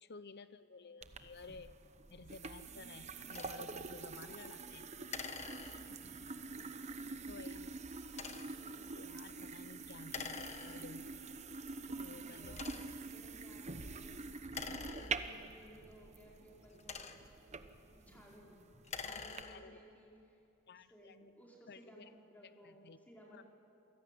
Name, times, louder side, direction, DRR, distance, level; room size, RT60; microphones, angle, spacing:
voice 1, 0.0-1.7 2.1-4.9 5.9-6.0 7.3-7.8 8.9-11.1 11.9-12.6 19.2-19.8 20.7-21.2 21.7-22.1 22.6-23.0 23.3-23.4, left 4 dB, 50° left, 13 dB, 0.8 m, -54 dB
sound 1, 1.0-19.4, right 4 dB, 30° right, 0.9 m, -46 dB
sound 2, 3.3-3.6 5.1-6.1 8.1-8.6 10.1-11.1 11.8-11.9 12.5-13.1 14.4-15.6 16.6-17.5 18.7-19.8, left 5 dB, 30° left, 1.3 m, -46 dB
voice 2, 6.4-6.8 8.5-8.9 12.1-12.8 13.1-14.2 14.5-20.4 20.7-23.4, equal, 5° left, -3 dB, 5.2 m, -60 dB
27.5 x 18.5 x 9.5 m, 2.6 s
head